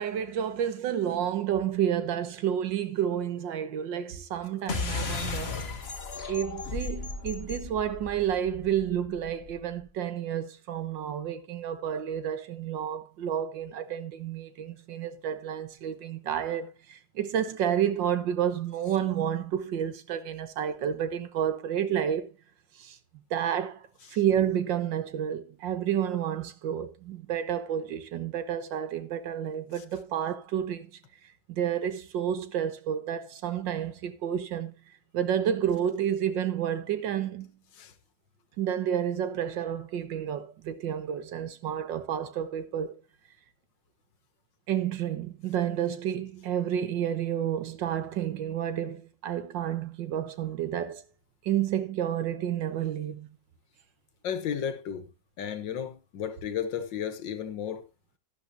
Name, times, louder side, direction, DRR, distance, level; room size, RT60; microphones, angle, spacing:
voice 1, 0.0-5.6 6.3-22.3 22.8-23.0 23.3-30.9 31.5-34.7 35.1-37.5 38.6-43.0 44.7-51.0 51.4-53.3, right 9 dB, 80° right, 1.7 m, -30 dB
sound 1, 4.7-9.6, left 4 dB, 40° left, 1.4 m, -35 dB
voice 2, 54.2-55.1 55.4-57.8, left 8 dB, 80° left, 1.8 m, -33 dB
12.0 x 11.5 x 2.7 m
omnidirectional pair, 2.0 m